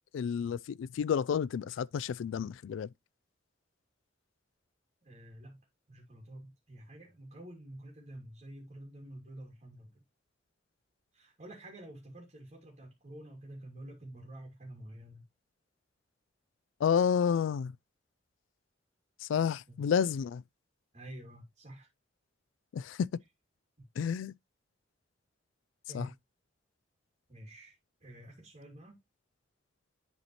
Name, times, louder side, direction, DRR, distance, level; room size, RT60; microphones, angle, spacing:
voice 1, 0.1-2.9 16.8-17.8 19.2-20.4 22.7-23.1 24.0-24.3 25.9-26.1, left 7 dB, 80° left, 0.3 m, -30 dB
voice 2, 5.0-5.6 5.9-10.0 11.1-15.2 19.7-19.8 20.9-21.9 25.9-26.1 27.3-27.8 28.0-29.0, right 1 dB, 35° right, 2.2 m, -49 dB
10.5 x 4.2 x 3.0 m
head